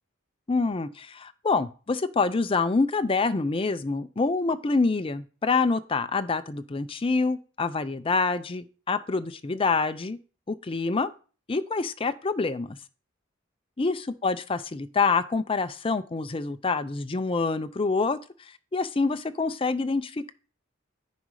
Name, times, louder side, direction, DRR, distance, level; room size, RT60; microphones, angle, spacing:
voice 1, 0.5-10.2 10.5-11.1 11.5-12.8 13.8-18.2 18.7-20.3, left 4 dB, 25° left, 0.5 m, -26 dB
9.5 x 5.0 x 4.8 m
head